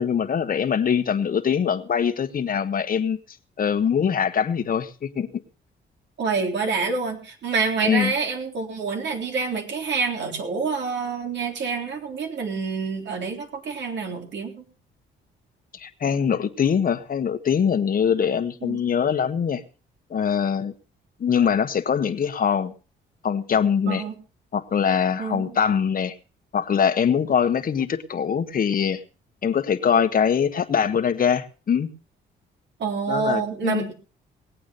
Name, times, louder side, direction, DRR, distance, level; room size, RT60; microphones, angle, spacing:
voice 1, 0.0-3.2 3.6-5.4 7.8-8.1 15.7-19.6 20.1-20.7 21.2-22.7 23.2-24.0 24.5-26.1 26.5-29.0 29.4-31.9 33.1-33.9, left 7 dB, 45° left, 8 dB, 1.4 m, -23 dB
voice 2, 6.2-14.6 18.6-18.8 23.9-24.1 25.2-25.6 32.8-33.9, right 5 dB, 65° right, 3 dB, 3.7 m, -27 dB
19.5 x 8.6 x 5.4 m, 0.37 s
cardioid pair, 90°, 20 cm